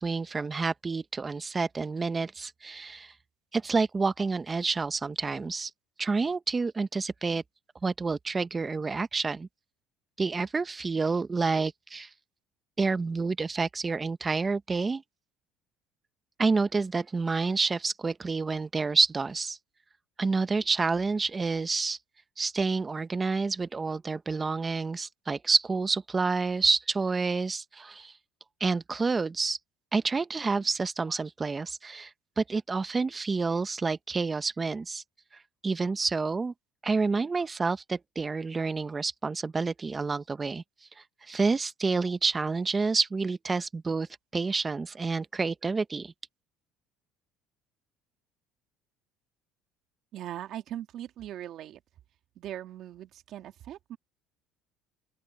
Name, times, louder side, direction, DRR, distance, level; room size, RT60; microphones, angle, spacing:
voice 1, 0.0-3.1 3.5-5.7 6.0-7.4 7.8-9.5 10.2-12.1 12.8-15.0 16.4-19.6 20.2-22.0 22.4-28.1 28.6-29.6 29.9-32.1 32.4-35.0 35.6-36.5 36.8-40.6 41.3-44.1 44.3-46.1, right 4 dB, 20° right, 1.0 m, -28 dB
voice 2, 50.1-51.8 52.4-54.0, right 12 dB, 55° right, 2.2 m, -40 dB
open air
cardioid pair, 110°, 0 cm